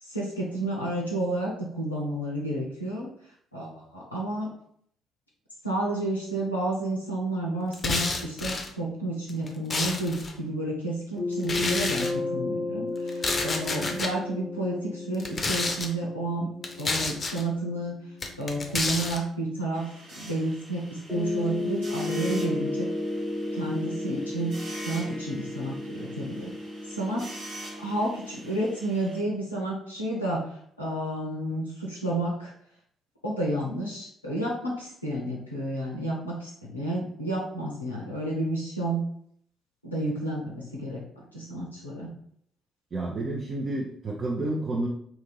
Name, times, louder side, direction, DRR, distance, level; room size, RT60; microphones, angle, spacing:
voice 1, 0.0-3.1 3.5-4.5 5.6-16.5 16.8-18.0 18.4-22.9 23.5-24.5 24.9-26.5 26.9-27.4 27.8-32.5 33.2-39.0 39.8-42.1, right 1 dB, 90° left, -4 dB, 0.5 m, -31 dB
sound 1, 7.7-8.7 9.3-10.3 11.4-12.1 13.1-14.1 15.1-15.9 16.6-17.4 18.2-19.2, left 3 dB, 35° left, 0.5 m, -29 dB
sound 2, 11.2-19.9 21.1-28.7, left 2 dB, ahead, 1.2 m, -34 dB
sound 3, 19.7-29.2, right 1 dB, 80° right, 1.3 m, -45 dB
voice 2, 42.9-44.9, right 2 dB, 40° right, -2 dB, 0.6 m, -30 dB
2.8 x 2.7 x 3.8 m, 0.66 s
figure-of-eight pair, 45°, 0 cm